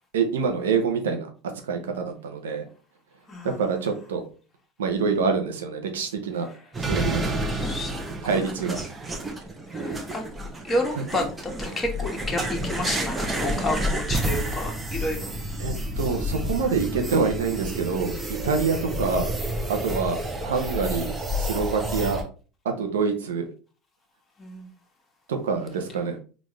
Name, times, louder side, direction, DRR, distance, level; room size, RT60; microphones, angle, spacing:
voice 1, 0.1-2.6 3.4-4.2 4.8-6.5 6.8-7.2 8.2-8.8 11.0-11.1 15.6-19.3 19.7-21.1 21.4-22.2 22.6-23.5 25.3-26.2, right 5 dB, 90° right, 5 dB, 0.7 m, -26 dB
voice 2, 3.3-3.6 7.5-7.9 9.7-10.2 10.6-15.4 24.4-24.7, left 1 dB, 20° left, 1 dB, 1.2 m, -30 dB
sound 1, 6.7-22.2, right 1 dB, 20° right, 0.7 m, -30 dB
4.0 x 2.5 x 3.1 m, 0.37 s
hypercardioid pair, 90°, 0 cm